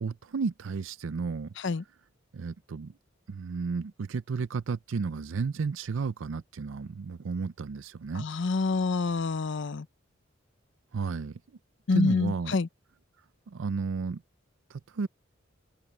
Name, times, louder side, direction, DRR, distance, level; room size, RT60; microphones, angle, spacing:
voice 1, 0.0-1.5 2.3-2.9 3.3-8.3 10.9-11.4 11.9-12.5 13.5-14.2 14.7-15.1, right 5 dB, 75° right, 0.5 m, -32 dB
voice 2, 8.1-9.9 11.9-12.7, left 3 dB, 65° left, 0.6 m, -27 dB
open air
head